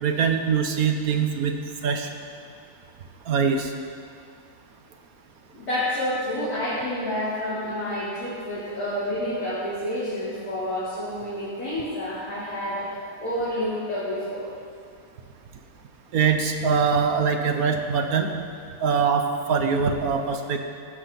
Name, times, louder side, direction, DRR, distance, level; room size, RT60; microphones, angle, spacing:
voice 1, 0.0-1.5 1.8-2.1 3.3-3.7 16.1-18.3 18.8-20.6, right 6 dB, 75° right, 5 dB, 1.5 m, -23 dB
voice 2, 5.5-14.5, left 1 dB, 85° left, -14 dB, 4.7 m, -29 dB
16.0 x 12.5 x 4.3 m, 2.4 s
omnidirectional pair, 1.6 m